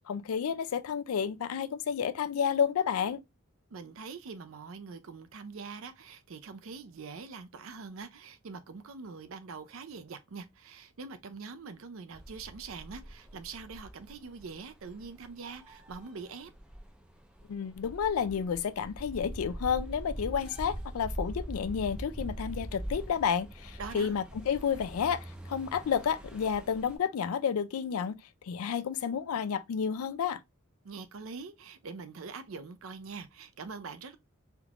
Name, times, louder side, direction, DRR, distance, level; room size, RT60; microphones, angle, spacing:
voice 1, 0.0-3.2 17.5-28.2 28.4-30.4, left 7 dB, 80° left, 0.4 m, -31 dB
voice 2, 3.7-16.5 23.8-24.2 30.8-34.2, right 4 dB, 65° right, 0.5 m, -44 dB
sound 1, 12.1-27.0, right 1 dB, 5° right, 0.4 m, -43 dB
3.5 x 2.4 x 2.9 m
head